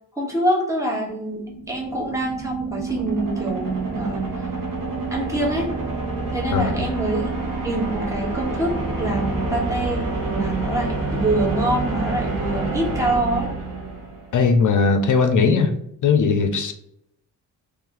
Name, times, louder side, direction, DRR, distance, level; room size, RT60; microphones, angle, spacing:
voice 1, 0.1-4.5 5.1-5.7 6.3-7.3 7.6-13.5, right 1 dB, 10° right, -3 dB, 1.3 m, -25 dB
sound 1, 1.3-14.4, right 3 dB, 55° right, 1.3 m, -28 dB
voice 2, 14.3-15.7 16.0-16.7, left 5 dB, 55° left, 7 dB, 0.6 m, -18 dB
3.2 x 3.1 x 3.8 m, 0.77 s
cardioid pair, 120°, 38 cm